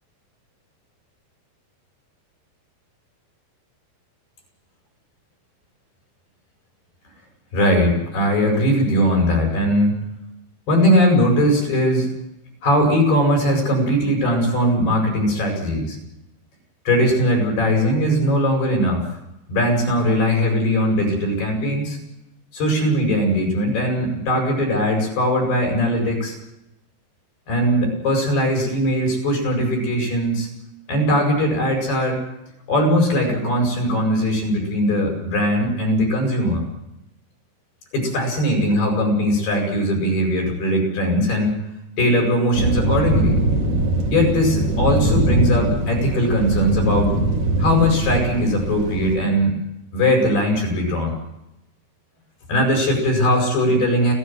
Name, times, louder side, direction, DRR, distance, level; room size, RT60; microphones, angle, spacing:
voice 1, 7.5-10.0 10.7-12.1 12.6-16.0 16.9-19.2 19.5-22.0 22.5-26.4 27.5-30.5 30.9-32.2 32.7-36.7 37.9-41.6 42.0-43.4 44.1-47.1 47.6-49.6 49.9-51.2 52.5-54.1, equal, 80° left, 1 dB, 10.0 m, -20 dB
sound 1, 42.6-49.2, right 1 dB, 50° right, 5.4 m, -21 dB
29.5 x 14.0 x 7.9 m, 0.86 s
omnidirectional pair, 4.5 m